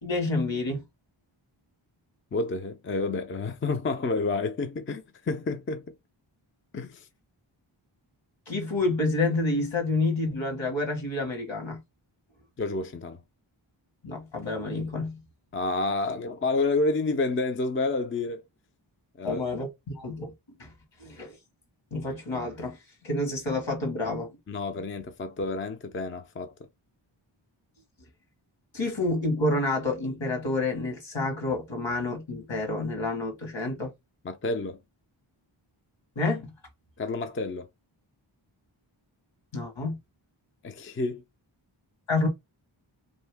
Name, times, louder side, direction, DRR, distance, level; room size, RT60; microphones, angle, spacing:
voice 1, 0.0-0.8 8.5-11.8 14.0-15.2 19.2-19.7 20.0-20.3 20.6-20.7 21.0-21.4 21.9-22.8 23.0-24.3 28.7-33.9 36.1-36.5 39.5-40.0 42.1-42.3, left 2 dB, 65° left, 1.4 m, -28 dB
voice 2, 2.3-5.8 6.7-7.1 12.6-13.2 15.5-18.4 19.2-19.4 24.5-26.5 34.2-34.8 37.0-37.7 40.6-41.2, left 3 dB, 25° left, 0.4 m, -29 dB
2.7 x 2.7 x 3.3 m
wide cardioid pair, 50°, 49 cm